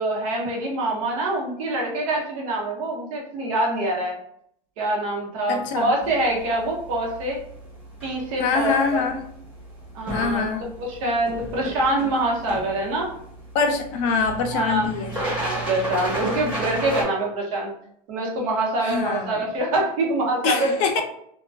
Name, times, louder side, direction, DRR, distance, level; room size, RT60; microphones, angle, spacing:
voice 1, 0.0-4.2 4.8-7.4 8.0-9.0 9.9-10.5 10.8-13.1 14.5-17.7 18.1-20.7, right 2 dB, 75° right, 0 dB, 0.9 m, -25 dB
voice 2, 5.5-5.9 8.4-9.1 10.1-10.7 13.5-15.2 18.8-19.4 20.4-21.0, left 5 dB, 60° left, 4 dB, 0.5 m, -24 dB
sound 1, 6.0-17.0, right 1 dB, 5° right, 0.9 m, -34 dB
2.4 x 2.2 x 2.3 m, 0.68 s
cardioid pair, 175°, 18 cm